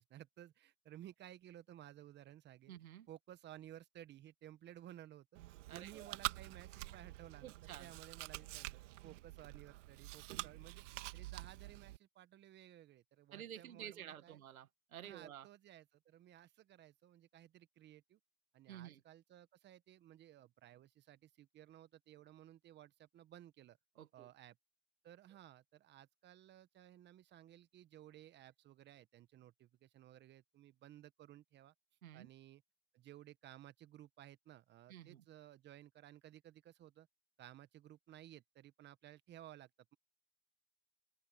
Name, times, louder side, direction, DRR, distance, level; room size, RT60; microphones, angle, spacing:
voice 1, 0.0-2.7 3.1-5.4 5.7-10.8 11.1-14.4 15.0-18.2 18.5-23.8 24.1-24.6 25.0-31.7 32.1-32.6 32.9-37.1 37.4-40.0, right 12 dB, 25° right, 1.3 m, -57 dB
voice 2, 2.7-3.1 5.7-6.2 7.4-7.9 13.3-15.5 18.7-19.0 24.0-24.3 32.0-32.3 34.9-35.2, right 11 dB, 80° right, 2.2 m, -51 dB
Chewing mastication, 5.3-12.0, right 18 dB, 60° right, 2.0 m, -47 dB
open air
hypercardioid pair, 125°, 42 cm